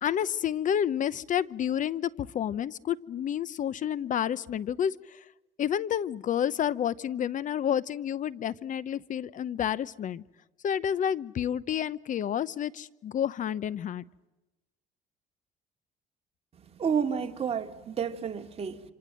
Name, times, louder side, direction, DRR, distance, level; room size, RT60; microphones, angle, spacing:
voice 1, 0.0-5.2 5.6-10.2 10.6-14.0, left 9 dB, 50° left, 0.8 m, -30 dB
voice 2, 16.8-18.8, right 7 dB, 35° right, 2.6 m, -30 dB
27.5 x 26.0 x 7.7 m
cardioid pair, 110°, 17 cm